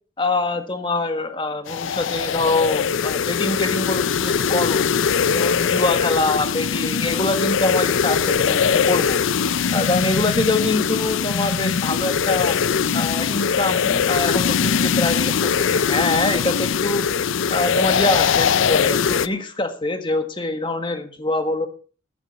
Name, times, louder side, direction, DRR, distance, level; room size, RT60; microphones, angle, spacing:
voice 1, 0.2-4.9 5.3-9.2 9.7-12.5 12.9-17.0 17.5-21.7, left 2 dB, 25° left, 7 dB, 1.5 m, -24 dB
sound 1, 1.7-19.3, left 6 dB, 75° left, 0.5 m, -21 dB
14.5 x 10.5 x 4.1 m, 0.37 s
head